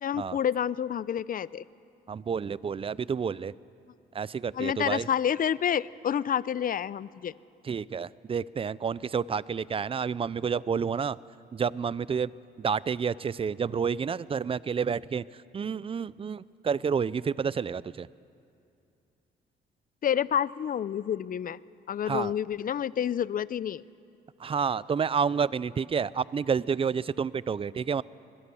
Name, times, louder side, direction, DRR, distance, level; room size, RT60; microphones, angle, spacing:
voice 1, 0.0-1.6 4.5-7.3 20.0-21.6 21.9-23.8, left 9 dB, 45° left, 19 dB, 0.6 m, -29 dB
voice 2, 2.1-3.5 4.1-5.1 7.6-11.2 11.5-12.3 12.6-15.2 15.5-18.1 22.1-22.3 24.4-28.0, right 6 dB, 30° right, 20 dB, 0.5 m, -29 dB
25.0 x 21.5 x 7.1 m, 2.6 s
cardioid pair, 90°, 20 cm